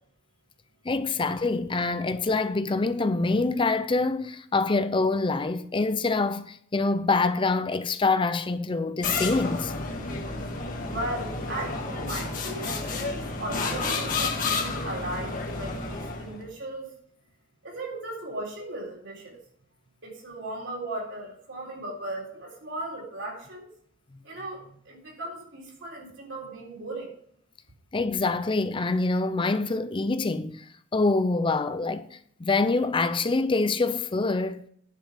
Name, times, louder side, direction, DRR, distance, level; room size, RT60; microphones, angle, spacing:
voice 1, 0.8-9.7 27.9-30.6 30.9-34.6, left 3 dB, 25° left, 0.5 m, -25 dB
sound 1, 9.0-16.4, left 3 dB, 45° left, 1.6 m, -31 dB
voice 2, 10.8-16.9 17.6-19.4 20.0-23.7 24.2-27.2, right 1 dB, 70° right, 3.9 m, -37 dB
10.0 x 5.4 x 7.2 m
head